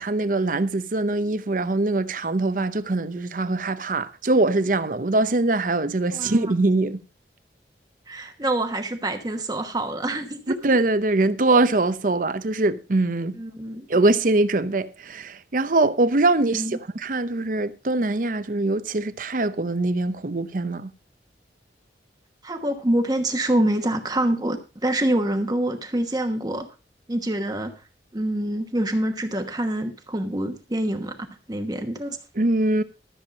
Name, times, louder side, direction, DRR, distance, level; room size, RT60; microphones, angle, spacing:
voice 1, 0.0-7.0 10.5-13.4 13.9-20.9 32.4-32.8, right 2 dB, 50° right, 0.7 m, -22 dB
voice 2, 8.1-10.5 13.4-13.9 16.4-16.8 22.4-24.6 24.8-26.7 27.1-27.7 28.1-32.2, right 1 dB, 20° right, 1.1 m, -26 dB
13.5 x 7.3 x 5.1 m
head